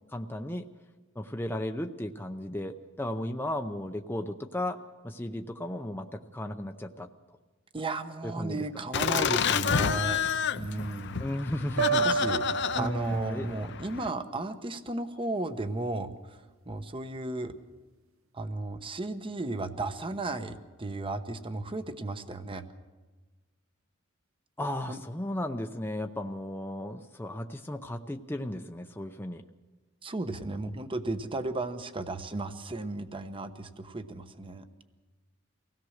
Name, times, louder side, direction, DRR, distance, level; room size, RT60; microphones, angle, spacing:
voice 1, 0.1-0.7 1.2-7.1 8.2-8.6 11.2-12.1 12.7-13.5 24.6-29.4, left 1 dB, 10° left, 4 dB, 0.7 m, -35 dB
voice 2, 7.7-10.2 10.5-11.2 12.0-16.4 16.7-17.6 18.3-22.7 24.9-25.0 30.0-34.7, right 2 dB, 25° right, 10 dB, 1.0 m, -34 dB
Laughter, 8.9-14.1, left 7 dB, 60° left, 0.7 m, -29 dB
sound 1, 11.8-13.7, right 6 dB, 75° right, 1.0 m, -30 dB
24.0 x 17.0 x 6.5 m, 1.3 s
head